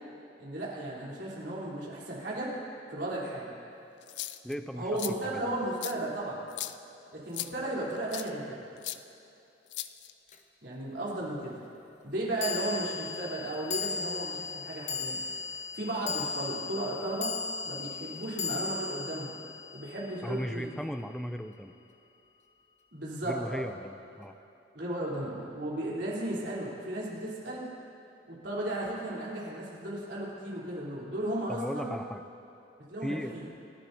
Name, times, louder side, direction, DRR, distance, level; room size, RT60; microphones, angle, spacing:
voice 1, 0.4-2.5 2.9-3.5 4.7-6.5 7.1-8.6 10.6-11.5 12.0-17.3 17.6-19.4 19.7-20.7 22.9-23.6 24.7-27.7 28.3-31.9 32.9-33.5, right 1 dB, 70° right, -6 dB, 3.5 m, -35 dB
sound 1, 4.0-4.5 5.0-5.1 5.8-5.9 6.5-6.8 7.3-7.5 8.1-8.3 8.8-9.0 9.7-10.3, left 15 dB, 70° left, 0.4 m, -37 dB
voice 2, 4.4-4.9 5.2-5.6 20.2-21.7 23.2-24.4 31.5-32.2 33.0-33.4, equal, 5° left, 7 dB, 0.4 m, -36 dB
sound 2, 10.3-10.4 12.4-20.8, left 5 dB, 40° left, 0.9 m, -37 dB
27.0 x 11.5 x 2.7 m, 2.9 s
head